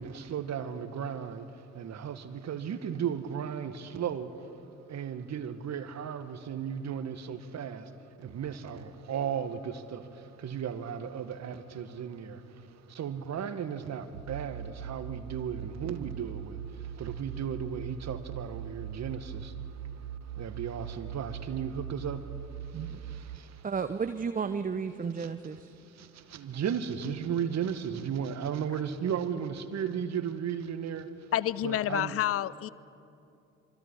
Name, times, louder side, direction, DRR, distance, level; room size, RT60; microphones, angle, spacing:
voice 1, 0.0-4.5 4.9-7.9 8.2-23.7 25.2-31.3 31.6-32.2, right 8 dB, 45° right, 1.8 m, -36 dB
sound 1, 14.1-23.4, right 9 dB, 85° right, 0.9 m, -41 dB
voice 2, 23.6-25.7, right 5 dB, 20° right, 0.9 m, -32 dB
voice 3, 31.3-32.7, left 12 dB, 35° left, 0.7 m, -29 dB
26.5 x 24.5 x 5.6 m
figure-of-eight pair, 55°, 38 cm